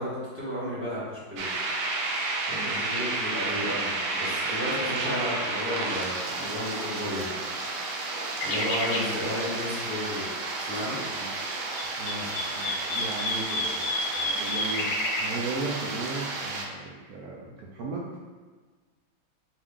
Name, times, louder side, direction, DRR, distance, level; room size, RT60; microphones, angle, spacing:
voice 1, 0.0-1.5 2.5-7.3 8.4-10.3 10.6-11.0, left 1 dB, 10° right, -9 dB, 1.1 m, -33 dB
sound 1, 1.4-16.7, right 3 dB, 90° right, 1.4 m, -32 dB
voice 2, 2.5-2.8 8.6-9.1 11.1-11.3 12.0-18.2, right 3 dB, 70° right, -3 dB, 0.9 m, -37 dB
sound 2, 8.3-9.1 11.5-15.2, left 2 dB, 70° left, 1.0 m, -30 dB
5.0 x 2.5 x 3.6 m, 1.4 s
omnidirectional pair, 2.1 m